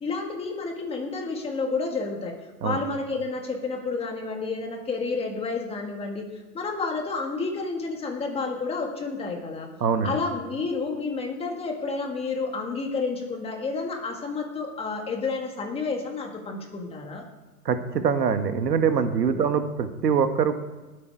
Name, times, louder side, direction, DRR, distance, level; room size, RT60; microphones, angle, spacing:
voice 1, 0.0-2.3 2.6-6.3 6.5-9.7 10.0-17.2, left 4 dB, 10° left, 2 dB, 1.9 m, -30 dB
voice 2, 9.8-10.2 17.6-20.5, right 6 dB, 85° right, 8 dB, 1.6 m, -23 dB
18.5 x 8.6 x 4.7 m, 1.2 s
hypercardioid pair, 140°, 47 cm